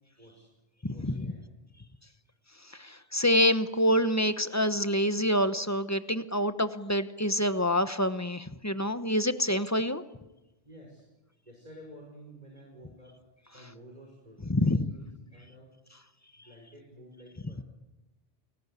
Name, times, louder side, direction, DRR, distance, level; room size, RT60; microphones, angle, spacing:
voice 1, 0.2-0.5 0.9-1.5 10.6-11.1 11.5-13.1 13.5-15.7 16.4-17.6, equal, 40° right, -1 dB, 5.8 m, -51 dB
voice 2, 0.8-1.3 2.7-10.0 14.5-14.9 17.5-17.6, equal, 15° left, 11 dB, 1.0 m, -27 dB
29.0 x 20.0 x 8.4 m, 1.0 s
omnidirectional pair, 1.1 m